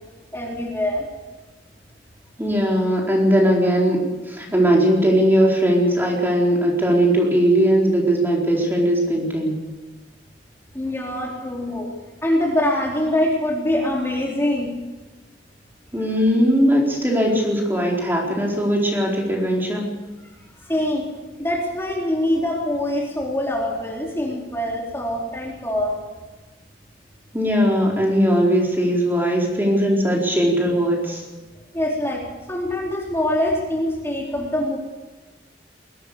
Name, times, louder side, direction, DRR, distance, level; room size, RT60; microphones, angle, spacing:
voice 1, 0.3-1.1 10.7-11.9 12.2-14.8 20.6-21.1 21.4-26.0 31.7-34.8, left 1 dB, 15° left, -2 dB, 4.0 m, -24 dB
voice 2, 2.4-9.6 15.9-19.9 27.3-31.2, equal, 10° right, -2 dB, 4.5 m, -19 dB
22.0 x 17.5 x 7.0 m, 1.2 s
head